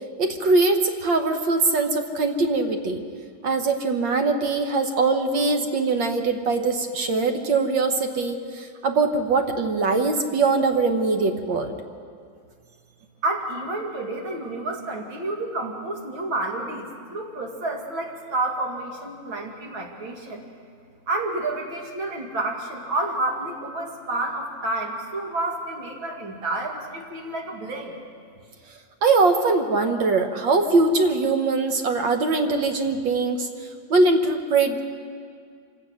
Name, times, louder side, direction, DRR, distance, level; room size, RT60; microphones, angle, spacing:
voice 1, 0.2-3.0 3.4-11.7 29.0-34.8, right 3 dB, 75° right, 5 dB, 1.8 m, -22 dB
voice 2, 13.2-20.4 21.1-28.0, right 2 dB, 90° right, 1 dB, 3.0 m, -29 dB
26.0 x 16.5 x 6.4 m, 2.2 s
omnidirectional pair, 2.1 m